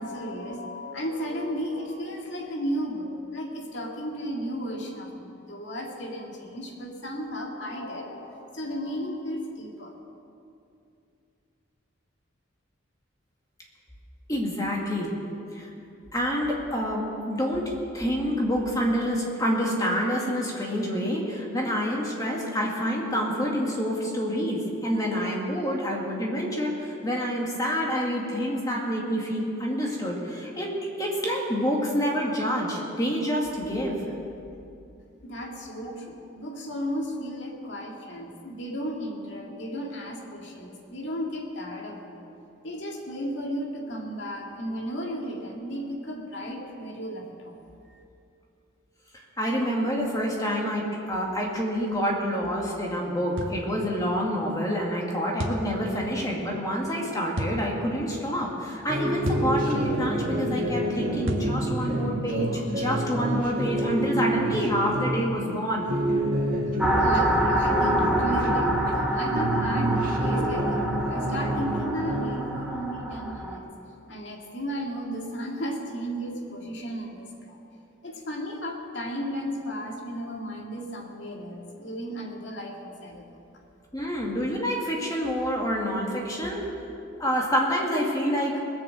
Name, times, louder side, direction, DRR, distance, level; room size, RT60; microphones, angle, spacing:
voice 1, 0.0-9.9 35.2-42.2 42.6-47.6 67.0-73.7 74.1-77.6 78.0-83.3, equal, 60° left, 0 dB, 2.2 m, -34 dB
voice 2, 14.3-15.1 15.5-15.7 16.1-30.7 31.0-34.0 49.1-65.9 83.9-86.6 87.2-88.6, equal, 20° left, -2 dB, 2.1 m, -27 dB
sound 1, 53.4-53.6 55.4-55.7 57.3-57.6 59.2-59.5 61.3-61.5, equal, 75° right, 1.6 m, -30 dB
sound 2, 58.9-65.4 65.8-69.1 69.3-72.5, right 1 dB, 45° right, 2.1 m, -28 dB
sound 3, 66.8-73.6, right 1 dB, 5° right, 1.2 m, -27 dB
20.0 x 7.2 x 7.6 m, 2.6 s
head